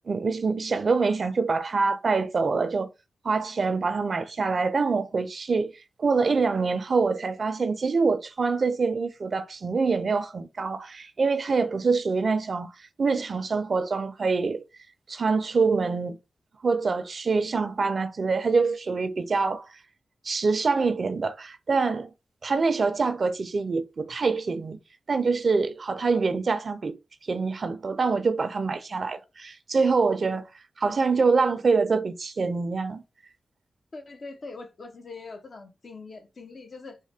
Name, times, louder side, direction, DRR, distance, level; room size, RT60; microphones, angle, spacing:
voice 1, 0.1-2.9 3.2-5.7 6.0-12.7 13.0-14.6 15.1-16.2 16.6-19.7 20.2-22.1 22.4-24.8 25.1-27.0 27.3-30.5 30.8-33.0, right 4 dB, 60° right, 0.5 m, -25 dB
voice 2, 33.9-37.0, left 3 dB, 60° left, 0.8 m, -42 dB
3.6 x 2.1 x 3.3 m
supercardioid pair, 40°, 0 cm